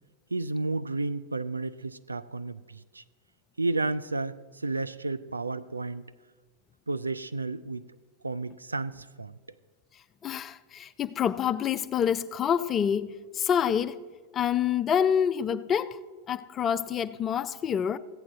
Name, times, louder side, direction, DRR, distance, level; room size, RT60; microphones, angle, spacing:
voice 1, 0.3-3.0 3.6-4.4 4.6-6.0 6.9-7.8 8.2-9.3, right 3 dB, 80° right, 0.3 m, -32 dB
voice 2, 10.2-14.0 14.3-16.0 16.3-18.0, left 8 dB, 25° left, 0.4 m, -27 dB
14.5 x 8.7 x 4.0 m
figure-of-eight pair, 90°, 0 cm